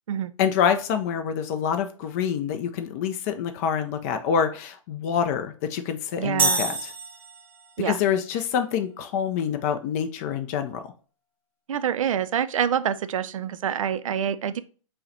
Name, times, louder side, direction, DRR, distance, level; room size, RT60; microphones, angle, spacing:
voice 1, 0.4-6.9 7.8-10.8, left 8 dB, 25° left, 7 dB, 0.4 m, -26 dB
voice 2, 6.2-6.6 7.8-8.0 11.7-14.6, right 9 dB, 65° right, 13 dB, 0.4 m, -26 dB
sound 1, 6.4-7.8, right 3 dB, 10° right, 1.0 m, -26 dB
5.4 x 2.1 x 3.9 m, 0.39 s
hypercardioid pair, 135°, 18 cm